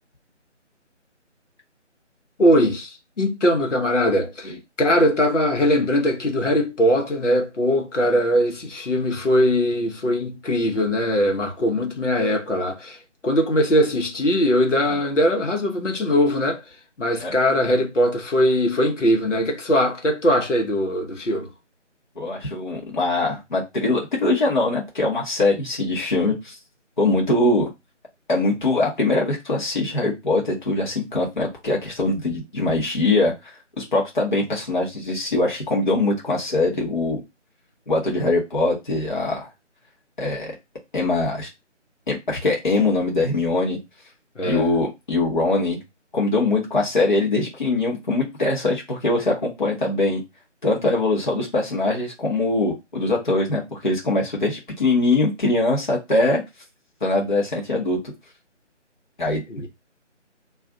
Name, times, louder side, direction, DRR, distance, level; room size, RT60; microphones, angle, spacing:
voice 1, 2.4-13.0 13.2-16.6 17.0-21.5 44.4-44.7 59.5-59.7, equal, 75° left, 1.0 m, -21 dB
voice 2, 22.2-26.5 27.0-27.7 28.3-33.3 33.8-37.2 37.9-39.5 40.2-40.5 40.9-41.5 42.1-43.8 44.5-45.8 46.1-50.2 50.6-56.4 57.0-58.0 59.2-59.4, left 2 dB, 40° left, 0.9 m, -22 dB
2.4 x 2.4 x 3.6 m
figure-of-eight pair, 160°, 37 cm